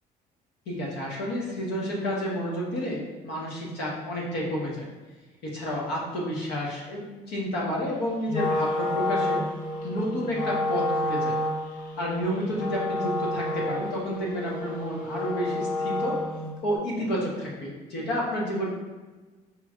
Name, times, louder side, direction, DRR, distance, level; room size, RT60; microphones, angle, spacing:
voice 1, 0.7-4.9 5.4-9.4 9.8-11.3 12.0-16.2 16.6-18.7, equal, 85° left, -3 dB, 1.2 m, -30 dB
Wind instrument woodwind instrument, 8.3-16.5, left 2 dB, 55° left, 0.8 m, -29 dB
4.8 x 3.2 x 2.5 m, 1.3 s
cardioid pair, 110°, 17 cm